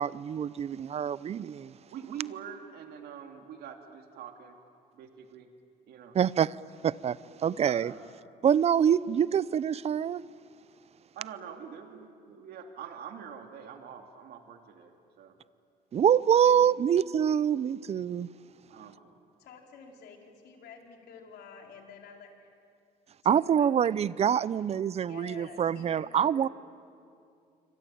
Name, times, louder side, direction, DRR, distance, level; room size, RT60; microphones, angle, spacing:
voice 1, 0.0-1.7 6.1-6.6 6.8-7.9 8.4-10.2 15.9-18.3 23.2-26.5, right 8 dB, 40° right, 0.6 m, -25 dB
voice 2, 1.9-4.6 4.9-5.5 5.9-6.2 7.6-8.0 11.2-15.4 16.4-16.7 18.7-19.0, right 8 dB, 70° right, 2.3 m, -45 dB
voice 3, 19.4-22.5 23.3-23.9 24.9-26.5, left 6 dB, 75° left, 4.3 m, -50 dB
27.0 x 25.0 x 8.7 m
cardioid pair, 110°, 17 cm